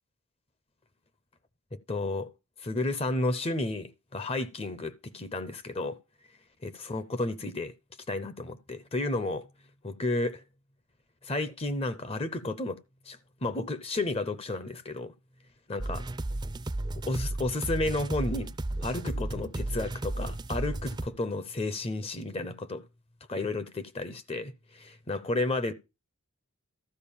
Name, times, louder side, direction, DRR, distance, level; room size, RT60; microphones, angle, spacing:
voice 1, 1.7-2.3 2.6-6.0 6.6-7.7 8.1-9.5 9.8-10.4 11.2-12.8 13.0-15.1 15.7-16.0 17.0-18.5 18.8-22.8 23.3-25.7, left 2 dB, 25° left, 0.6 m, -32 dB
sound 1, 15.8-21.1, right 1 dB, 20° right, 0.5 m, -34 dB
13.0 x 4.6 x 7.1 m
head